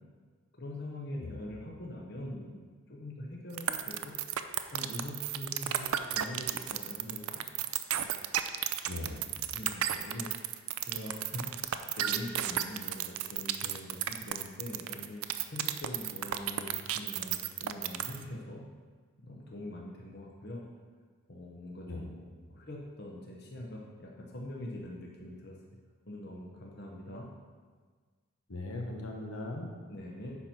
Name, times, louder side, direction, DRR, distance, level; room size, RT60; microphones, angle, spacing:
voice 1, 0.6-2.6 2.9-4.2 4.7-7.6 8.0-8.2 9.5-11.4 11.7-15.2 15.5-18.6 19.2-20.6 21.3-22.2 22.5-25.6 26.1-27.3 29.9-30.4, left 1 dB, 50° left, -2 dB, 1.0 m, -43 dB
sound 1, 3.6-18.2, right 11 dB, 80° right, 0.5 m, -32 dB
voice 2, 8.9-9.4 21.9-22.1 28.5-29.7, left 2 dB, 80° left, 1 dB, 1.3 m, -39 dB
9.8 x 4.5 x 5.9 m, 1.5 s
head